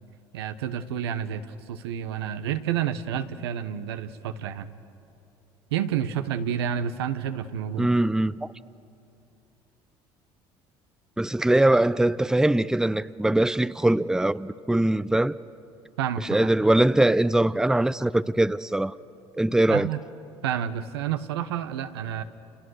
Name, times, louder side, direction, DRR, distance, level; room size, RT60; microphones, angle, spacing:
voice 1, 0.3-4.7 5.7-7.9 16.0-16.5 19.7-20.0 20.4-22.2, right 9 dB, 90° right, 1.1 m, -29 dB
voice 2, 7.8-8.5 11.2-15.4 16.2-18.9 19.4-19.9, right 1 dB, 5° right, 0.6 m, -22 dB
29.5 x 29.0 x 6.5 m
hypercardioid pair, 70°, 13 cm